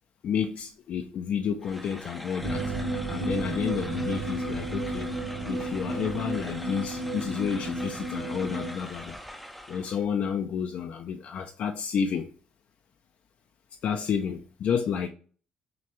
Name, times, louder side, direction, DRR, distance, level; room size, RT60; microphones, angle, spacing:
voice 1, 0.2-2.7 3.1-5.1 5.5-9.2 9.7-12.3 13.8-15.1, left 7 dB, 65° left, 0.4 m, -30 dB
sound 1, 1.6-10.0, equal, ahead, 0.5 m, -43 dB
sound 2, 2.4-8.7, right 2 dB, 80° right, 0.7 m, -32 dB
6.0 x 2.3 x 3.0 m
cardioid pair, 95°, 3 cm